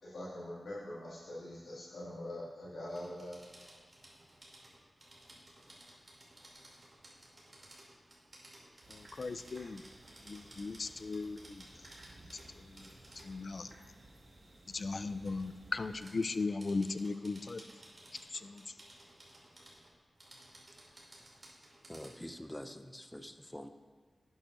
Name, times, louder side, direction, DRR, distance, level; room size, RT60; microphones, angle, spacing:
voice 1, 0.0-3.4, left 1 dB, 85° left, -11 dB, 2.3 m, -43 dB
sound 1, 2.9-13.4 14.7-15.5 16.0-22.2, right 1 dB, 50° right, 2.9 m, -57 dB
sound 2, 8.8-16.1, right 1 dB, 75° right, 1.8 m, -57 dB
voice 2, 8.9-9.8 10.2-11.6 12.6-12.9 13.2-13.7 14.7-17.6 18.3-18.6, left 3 dB, 60° left, 12 dB, 0.4 m, -37 dB
voice 3, 21.9-23.7, equal, 10° left, 8 dB, 0.7 m, -46 dB
11.5 x 8.7 x 2.6 m, 1.5 s
cardioid pair, 45°, 0 cm